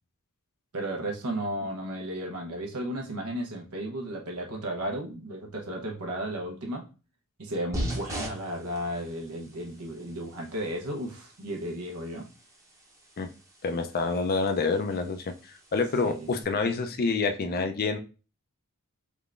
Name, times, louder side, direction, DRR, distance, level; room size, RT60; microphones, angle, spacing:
voice 1, 0.7-6.9 7.4-12.3 16.0-16.3, right 1 dB, 80° right, 0.9 m, -34 dB
sound 1, 7.7-16.4, equal, 15° right, 0.8 m, -41 dB
voice 2, 13.6-18.0, left 4 dB, 45° left, 0.4 m, -27 dB
3.6 x 3.4 x 2.4 m
head